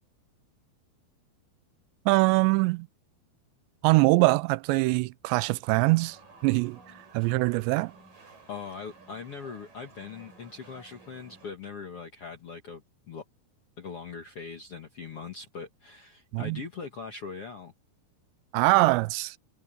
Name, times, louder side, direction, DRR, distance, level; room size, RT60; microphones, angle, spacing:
voice 1, 2.1-2.9 3.8-6.2 6.4-6.8 7.1-7.9 16.3-16.6 18.5-19.4, right 23 dB, 85° right, 2.8 m, -23 dB
sound 1, 5.9-11.5, right 4 dB, 50° right, 8.7 m, -54 dB
voice 2, 8.5-13.2 13.8-17.7, left 5 dB, 60° left, 1.5 m, -41 dB
omnidirectional pair, 5.1 m